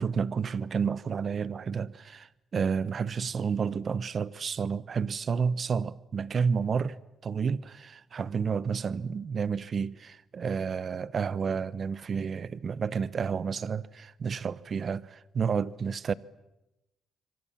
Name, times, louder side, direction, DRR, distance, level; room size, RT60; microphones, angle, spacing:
voice 1, 0.0-16.1, right 6 dB, 45° right, 1.0 m, -30 dB
26.5 x 24.5 x 7.3 m
cardioid pair, 90°, 0 cm